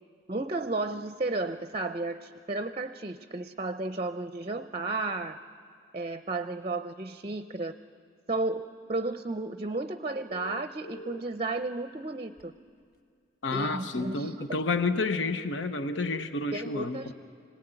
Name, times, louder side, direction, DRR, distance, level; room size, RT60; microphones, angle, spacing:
voice 1, 0.3-5.4 5.9-7.8 8.3-12.5 13.5-14.6 16.5-17.1, right 2 dB, 30° right, 9 dB, 0.6 m, -33 dB
sound 1, 10.3-11.2 12.4-12.5 15.9-16.2, left 1 dB, 50° left, 1.6 m, -43 dB
voice 2, 13.4-17.1, left 3 dB, 70° left, 9 dB, 1.0 m, -30 dB
26.0 x 19.0 x 9.1 m, 2.2 s
head